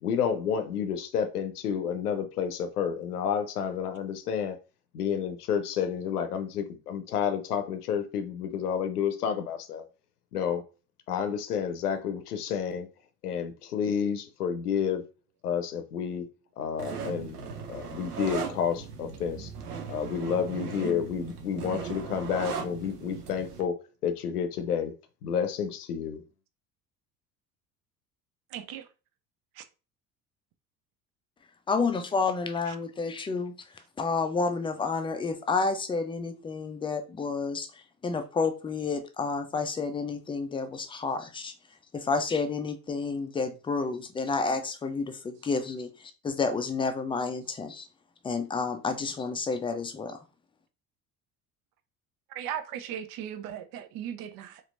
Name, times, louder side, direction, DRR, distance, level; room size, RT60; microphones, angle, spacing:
voice 1, 0.0-4.6 4.9-9.8 10.3-10.6 11.1-12.9 13.2-15.0 15.4-16.3 16.6-17.4 17.7-19.5 19.9-23.8 24.0-24.9 25.2-26.2, left 7 dB, 80° left, 0.7 m, -30 dB
sound 1, 16.8-23.6, right 6 dB, 85° right, 0.6 m, -38 dB
voice 2, 28.5-28.9 29.6-29.7 32.7-32.8 52.3-54.6, right 10 dB, 50° right, 0.6 m, -37 dB
voice 3, 31.7-33.5 34.0-41.5 41.9-47.9 48.2-50.2, left 4 dB, 10° left, 0.4 m, -30 dB
4.2 x 2.6 x 2.5 m
figure-of-eight pair, 60°, 45 cm